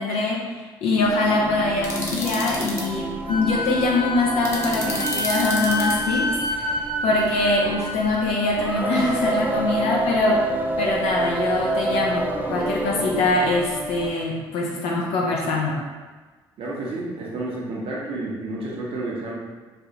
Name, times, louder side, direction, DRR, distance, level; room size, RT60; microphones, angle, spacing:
voice 1, 0.0-6.7 7.0-10.5 10.8-15.7, left 2 dB, 75° left, -3 dB, 0.6 m, -23 dB
Singing, 1.0-14.2, right 2 dB, 15° right, 0.4 m, -29 dB
sound 1, 1.8-2.8 4.4-5.9, left 1 dB, 25° left, 1.0 m, -30 dB
Wind instrument woodwind instrument, 3.3-8.4, left 1 dB, 50° left, 1.0 m, -29 dB
voice 2, 16.6-19.3, right 2 dB, 65° right, -4 dB, 0.9 m, -30 dB
3.3 x 2.3 x 2.9 m, 1.3 s
supercardioid pair, 60°, 10 cm